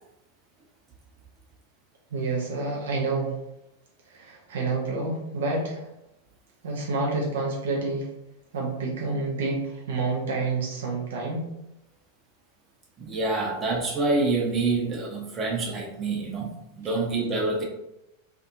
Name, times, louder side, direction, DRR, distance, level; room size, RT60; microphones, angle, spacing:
voice 1, 2.1-3.4 4.1-5.9 6.6-8.1 8.5-11.5, right 3 dB, 60° right, -2 dB, 0.5 m, -28 dB
voice 2, 13.0-17.6, right 3 dB, 25° right, -2 dB, 0.8 m, -27 dB
2.6 x 2.5 x 2.5 m, 0.88 s
figure-of-eight pair, 90°, 0 cm